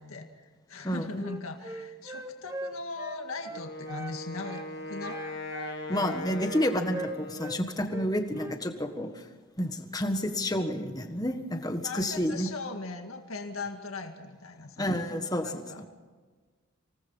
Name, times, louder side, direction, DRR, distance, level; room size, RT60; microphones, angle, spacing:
voice 1, 0.0-5.2 5.5-5.6 5.9-6.2 11.8-14.9 15.4-15.8, left 3 dB, 80° left, 5 dB, 1.9 m, -39 dB
Wind instrument woodwind instrument, 1.2-4.2 4.4-4.7 5.0-7.6 7.9-8.6, right 1 dB, 15° right, 0.9 m, -40 dB
Wind instrument woodwind instrument 2, 3.5-7.8, left 1 dB, 50° left, 2.8 m, -39 dB
voice 2, 5.9-9.2 9.6-12.5 14.8-15.9, equal, 15° left, 6 dB, 1.5 m, -30 dB
26.5 x 19.0 x 5.6 m, 1.4 s
head